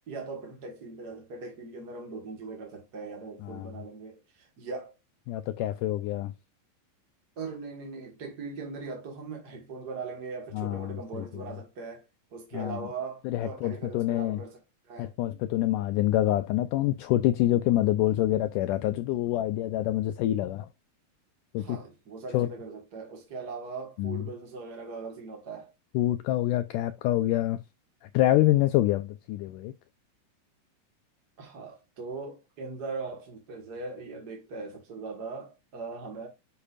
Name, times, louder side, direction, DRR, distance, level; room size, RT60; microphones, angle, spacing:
voice 1, 0.1-4.9 7.4-12.0 12.3-14.6 14.8-15.1 21.5-25.7 31.4-36.3, right 4 dB, 45° right, 1.3 m, -40 dB
voice 2, 3.4-3.7 5.3-6.3 10.5-11.4 12.5-12.8 13.3-14.4 15.0-20.7 21.5-21.8 22.3-22.5 24.0-24.3 25.9-27.6 28.0-29.7, left 14 dB, 80° left, 1.9 m, -26 dB
10.0 x 5.3 x 2.5 m
omnidirectional pair, 4.1 m